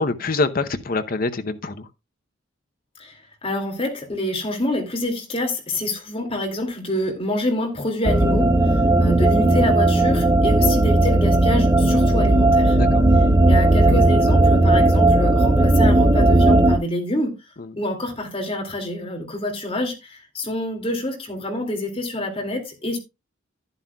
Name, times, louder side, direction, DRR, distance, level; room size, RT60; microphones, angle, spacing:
voice 1, 0.0-1.9 12.7-13.0 17.6-17.7, left 3 dB, 45° left, 0.8 m, -25 dB
voice 2, 3.0-12.8 13.5-17.4 17.8-23.0, left 1 dB, 30° left, 2.3 m, -27 dB
sound 1, 8.0-16.8, right 2 dB, 15° right, 0.5 m, -16 dB
11.5 x 10.5 x 2.3 m
head